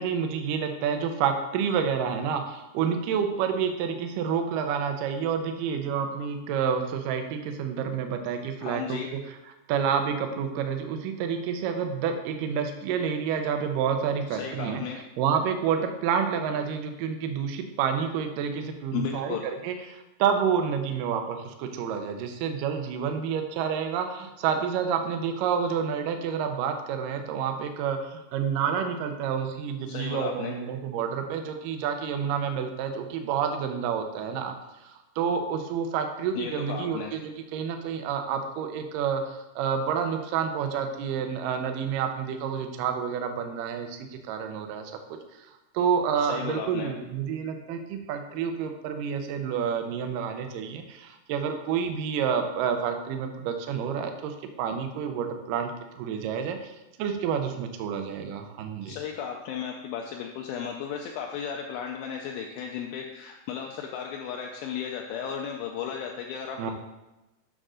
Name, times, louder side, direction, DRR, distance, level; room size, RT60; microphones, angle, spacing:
voice 1, 0.0-9.2 9.7-14.8 15.2-34.5 34.8-44.9 45.7-56.7 57.0-59.0 66.6-66.7, right 7 dB, 90° right, 5 dB, 1.9 m, -29 dB
voice 2, 8.6-9.1 14.3-15.0 18.9-19.4 29.9-30.5 36.4-37.1 46.2-46.9 58.8-66.7, left 8 dB, 80° left, 1 dB, 2.2 m, -35 dB
7.7 x 3.7 x 6.2 m, 1.0 s
omnidirectional pair, 4.8 m